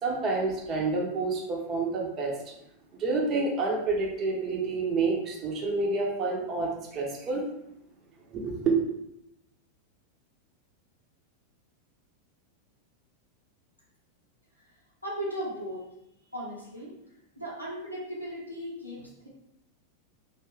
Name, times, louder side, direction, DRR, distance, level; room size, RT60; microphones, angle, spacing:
voice 1, 0.0-2.3 3.0-7.4 8.3-8.8, right 3 dB, 30° right, -2 dB, 0.7 m, -28 dB
voice 2, 15.0-15.9 16.3-16.9 17.4-19.3, equal, 90° right, -6 dB, 0.9 m, -36 dB
2.6 x 2.3 x 3.1 m, 0.82 s
figure-of-eight pair, 90°, 0 cm